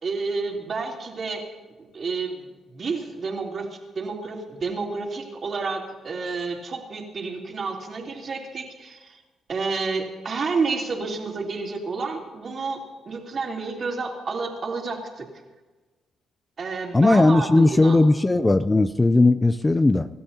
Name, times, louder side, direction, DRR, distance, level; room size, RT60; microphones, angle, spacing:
voice 1, 0.0-1.4 1.9-2.4 2.7-3.7 3.9-9.2 9.5-15.3 16.6-18.0, right 4 dB, 45° right, 0 dB, 3.4 m, -30 dB
voice 2, 16.9-20.1, left 2 dB, 20° left, 12 dB, 0.5 m, -18 dB
27.0 x 13.0 x 2.9 m, 1.2 s
cardioid pair, 90°, 0 cm